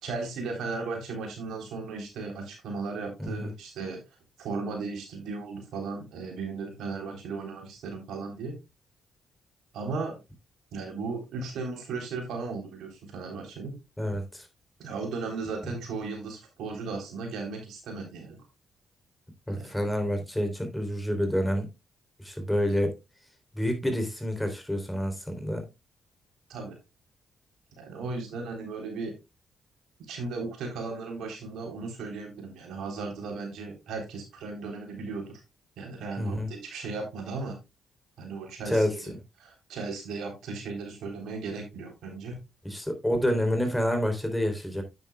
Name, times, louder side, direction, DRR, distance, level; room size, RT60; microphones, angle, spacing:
voice 1, 0.0-4.0 4.4-8.5 9.7-10.2 10.7-13.8 14.8-18.4 19.5-19.7 26.5-26.8 27.8-29.1 30.1-35.2 35.8-37.6 38.2-39.1 39.4-42.3, right 4 dB, 80° right, 3.5 m, -36 dB
voice 2, 3.2-3.5 14.0-14.5 19.5-21.7 22.2-22.9 23.5-25.7 36.2-36.5 38.6-39.2 42.6-44.8, equal, 10° left, 3.4 m, -28 dB
9.2 x 8.7 x 2.3 m
supercardioid pair, 60°, 0 cm